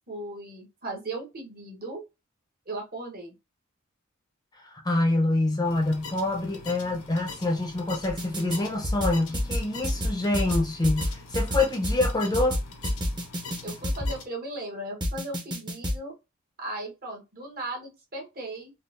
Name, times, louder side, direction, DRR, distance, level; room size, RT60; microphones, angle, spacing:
voice 1, 0.1-2.0 2.7-3.3 13.6-16.1 16.6-18.7, right 2 dB, 45° right, 1.1 m, -37 dB
voice 2, 4.6-12.6, left 2 dB, 20° left, 0.6 m, -26 dB
sound 1, 5.6-14.2, left 4 dB, 90° left, 1.0 m, -43 dB
sound 2, 8.1-8.6 8.8-14.1 15.0-16.0, left 1 dB, 20° right, 0.8 m, -28 dB
3.8 x 2.4 x 2.5 m
head